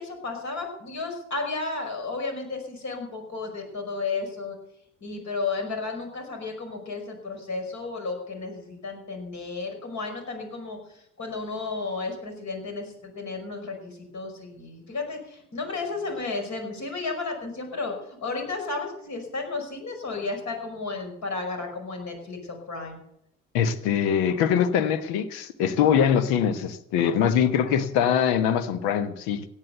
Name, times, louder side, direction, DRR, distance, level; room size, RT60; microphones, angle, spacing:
voice 1, 0.0-4.6 5.0-23.0, left 3 dB, 45° left, 5.5 m, -33 dB
voice 2, 23.5-29.4, left 8 dB, 65° left, 1.4 m, -23 dB
16.5 x 9.7 x 6.8 m
hypercardioid pair, 60°, 40 cm